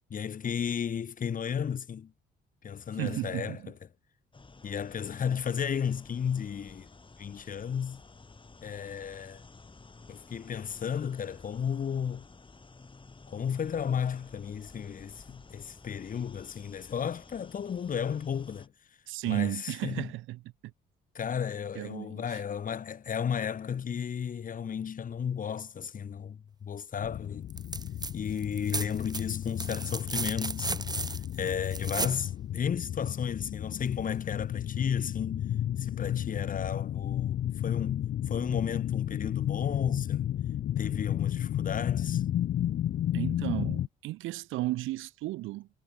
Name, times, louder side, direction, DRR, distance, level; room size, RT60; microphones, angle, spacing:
voice 1, 0.1-2.1 2.6-3.7 4.6-6.9 7.2-8.0 8.6-9.4 10.1-12.3 13.3-18.7 19.2-20.1 21.1-27.5 28.1-31.1 31.4-35.4 35.8-40.3 40.8-42.2, left 7 dB, 45° left, 1.1 m, -33 dB
voice 2, 3.0-3.7 19.1-20.4 21.7-22.4 43.1-45.7, right 17 dB, 90° right, 0.7 m, -34 dB
sound 1, 4.3-18.7, left 3 dB, 25° left, 7.1 m, -53 dB
sound 2, 27.0-43.9, left 11 dB, 65° left, 1.1 m, -33 dB
sound 3, 27.5-28.1 28.4-32.2 33.9-34.0, right 3 dB, 20° right, 1.4 m, -35 dB
cardioid pair, 90°, 20 cm